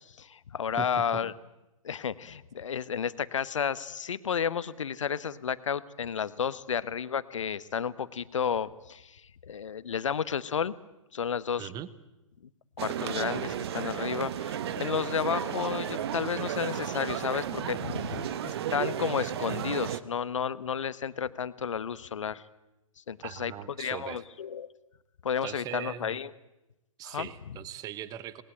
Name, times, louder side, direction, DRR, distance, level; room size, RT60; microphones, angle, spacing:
voice 1, 0.0-1.3 1.8-10.7 11.1-11.7 12.8-22.4 23.0-23.5 23.8-24.7 25.2-26.3 27.0-27.6, left 7 dB, 60° left, 16 dB, 1.1 m, -32 dB
voice 2, 0.8-1.2 11.6-11.9 23.2-24.2 25.4-26.2 27.0-28.4, right 10 dB, 20° right, 17 dB, 1.1 m, -40 dB
sound 1, 12.8-20.0, right 10 dB, 45° right, 1.2 m, -33 dB
27.5 x 20.0 x 9.1 m, 0.96 s
figure-of-eight pair, 115°, 18 cm